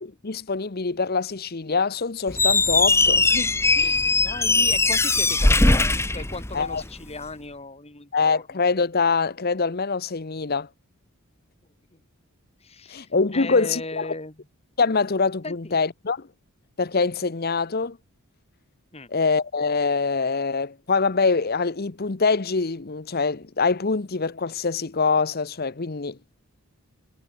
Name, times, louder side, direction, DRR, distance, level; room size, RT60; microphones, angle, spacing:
voice 1, 0.0-4.0 6.5-6.8 8.1-10.7 12.9-14.1 14.8-16.3 16.8-18.0 19.1-26.2, left 4 dB, 45° left, 0.9 m, -24 dB
Squeak, 2.3-6.9, left 3 dB, 10° left, 1.2 m, -20 dB
voice 2, 4.2-8.4 11.9-12.0 12.6-14.3 15.4-15.8 18.9-19.1, left 2 dB, 30° left, 2.9 m, -37 dB
head